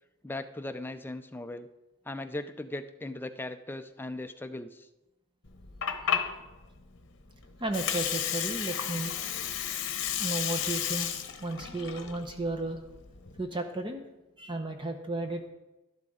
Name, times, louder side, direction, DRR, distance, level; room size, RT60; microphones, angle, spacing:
voice 1, 0.2-1.7 2.0-4.9, left 2 dB, 10° left, 8 dB, 0.5 m, -38 dB
Water, 5.5-13.4, left 9 dB, 55° left, 1.0 m, -33 dB
voice 2, 7.6-9.1 10.2-12.8 13.4-14.0 14.4-15.4, right 2 dB, 20° right, 5 dB, 0.7 m, -34 dB
12.0 x 11.5 x 3.7 m, 1.0 s
head